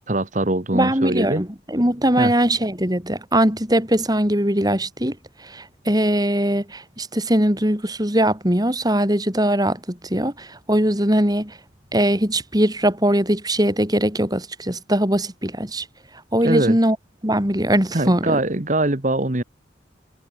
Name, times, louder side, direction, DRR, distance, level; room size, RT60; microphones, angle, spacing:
voice 1, 0.1-1.4 2.2-2.3 16.4-16.8 17.9-19.4, right 2 dB, 40° right, 1.6 m, -22 dB
voice 2, 0.7-11.6 11.9-15.9 16.3-17.0 17.2-18.4, right 1 dB, 20° right, 6.9 m, -21 dB
head